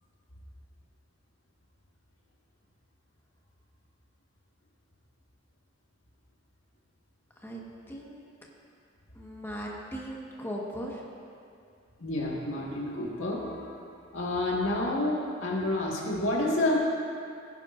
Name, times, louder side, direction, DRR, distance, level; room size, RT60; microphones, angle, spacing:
voice 1, 7.9-8.2 9.1-11.1, equal, 10° left, -3 dB, 1.4 m, -38 dB
voice 2, 12.0-13.8 14.1-16.8, left 1 dB, 85° left, -4 dB, 1.8 m, -29 dB
16.5 x 10.5 x 2.6 m, 2.4 s
head